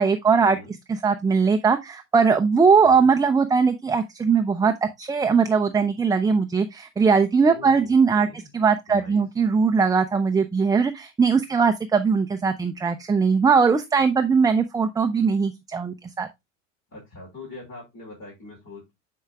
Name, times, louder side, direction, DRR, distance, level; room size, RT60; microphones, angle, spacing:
voice 1, 0.0-0.6 0.9-8.3 8.5-16.3, right 5 dB, 10° right, 0.5 m, -20 dB
voice 2, 7.4-8.5 8.9-9.2 16.9-18.9, left 3 dB, 35° left, 5.1 m, -43 dB
10.0 x 4.8 x 2.4 m
hypercardioid pair, 95°, 39 cm